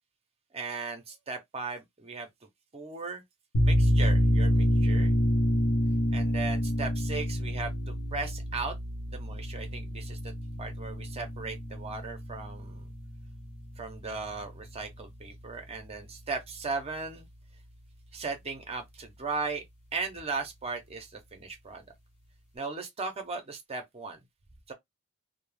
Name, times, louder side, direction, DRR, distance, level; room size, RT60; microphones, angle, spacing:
voice 1, 0.5-2.3 2.7-3.2 3.6-5.1 6.1-8.7 9.1-10.3 10.6-12.9 13.8-17.3 18.1-19.6 19.9-21.9 22.5-24.2 24.7-24.8, right 4 dB, 25° right, 0.5 m, -37 dB
sound 1, 3.5-14.8, equal, 75° left, 0.7 m, -28 dB
2.2 x 2.0 x 3.2 m
head